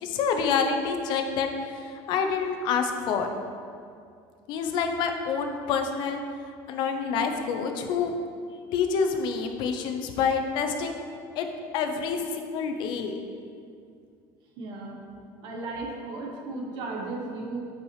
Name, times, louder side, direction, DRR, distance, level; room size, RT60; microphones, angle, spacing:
voice 1, 0.0-3.3 4.5-6.2 6.7-8.1 8.7-11.0 11.4-11.5 11.7-13.2, left 6 dB, 55° left, 5 dB, 0.6 m, -27 dB
voice 2, 14.6-15.0 15.4-17.7, right 2 dB, 55° right, 0 dB, 1.0 m, -35 dB
8.2 x 4.7 x 3.1 m, 2.3 s
cardioid pair, 165°, 10 cm